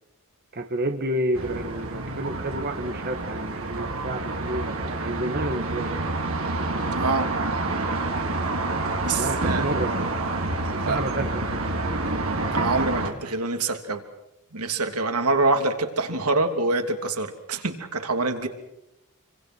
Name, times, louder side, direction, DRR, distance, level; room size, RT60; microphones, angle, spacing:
voice 1, 0.5-6.0 9.1-10.1 10.6-11.3 11.5-12.1, right 1 dB, 45° right, 5 dB, 2.0 m, -30 dB
sound 1, 1.3-13.1, right 2 dB, 65° right, 4.0 m, -28 dB
voice 2, 7.0-7.3 9.1-9.6 10.9-11.0 12.5-14.0 14.5-18.5, right 3 dB, 85° right, 6 dB, 3.0 m, -25 dB
27.5 x 25.5 x 6.3 m, 0.83 s
head